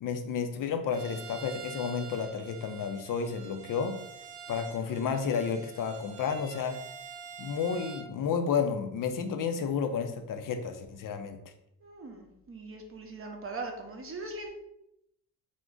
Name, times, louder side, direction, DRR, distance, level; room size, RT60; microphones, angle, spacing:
voice 1, 0.0-3.9 4.5-6.8 7.4-11.4, left 6 dB, 45° left, 6 dB, 0.5 m, -31 dB
Bowed string instrument, 0.9-8.1, right 6 dB, 70° right, 0.6 m, -46 dB
voice 2, 11.8-14.5, right 3 dB, 30° right, 3 dB, 0.7 m, -40 dB
2.4 x 2.1 x 3.6 m, 0.79 s
supercardioid pair, 65°, 46 cm